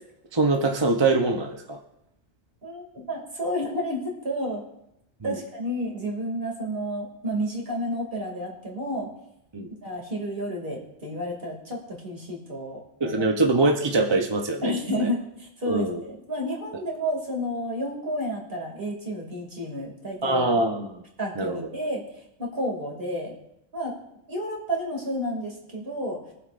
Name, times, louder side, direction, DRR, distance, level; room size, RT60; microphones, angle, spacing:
voice 1, 0.3-1.8 5.2-5.4 9.5-9.7 13.0-14.7 15.0-15.1 15.7-16.0 20.2-21.0 21.4-21.7, right 2 dB, 25° right, 2 dB, 0.7 m, -23 dB
voice 2, 2.6-4.6 5.2-9.1 9.8-13.2 14.6-20.5 21.2-23.3 23.7-24.0 24.3-26.3, equal, 45° right, -1 dB, 2.8 m, -31 dB
22.5 x 7.9 x 2.5 m, 0.84 s
omnidirectional pair, 1.3 m